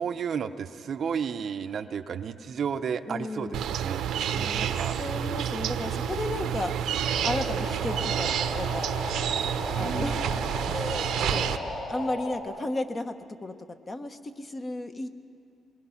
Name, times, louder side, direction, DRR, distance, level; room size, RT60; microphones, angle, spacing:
voice 1, 0.0-4.9 9.7-10.3, right 7 dB, 55° right, 9 dB, 0.7 m, -33 dB
voice 2, 3.1-3.6 4.3-4.7 5.0-6.7 7.2-8.9 9.8-10.4 10.7-11.6 11.9-13.1 13.4-15.1, left 2 dB, 30° left, 7 dB, 1.2 m, -34 dB
sound 1, 3.5-11.6, right 8 dB, 80° right, 0.9 m, -29 dB
sound 2, 7.0-12.4, left 1 dB, 55° left, 5.6 m, -36 dB
27.0 x 21.0 x 5.9 m, 2.5 s
cardioid pair, 90°, 0 cm